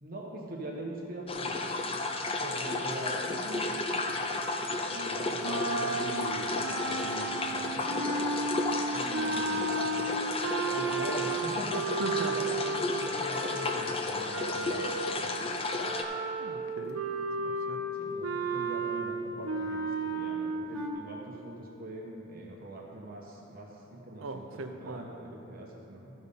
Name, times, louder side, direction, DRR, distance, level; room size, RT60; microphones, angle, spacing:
voice 1, 0.0-1.6 2.4-3.7 4.9-8.2 8.9-9.9 10.7-11.8 12.3-14.8 15.2-15.4 17.9-26.1, right 1 dB, 45° right, -2 dB, 1.2 m, -42 dB
sound 1, 1.3-16.0, left 2 dB, 25° left, 0.6 m, -33 dB
sound 2, 5.4-15.2 15.7-20.9, right 3 dB, 85° right, 1.1 m, -34 dB
voice 2, 12.0-12.4 16.4-17.0 17.4-17.8 24.2-25.1, right 3 dB, 65° right, 6 dB, 0.7 m, -38 dB
13.5 x 5.4 x 5.5 m, 2.8 s
head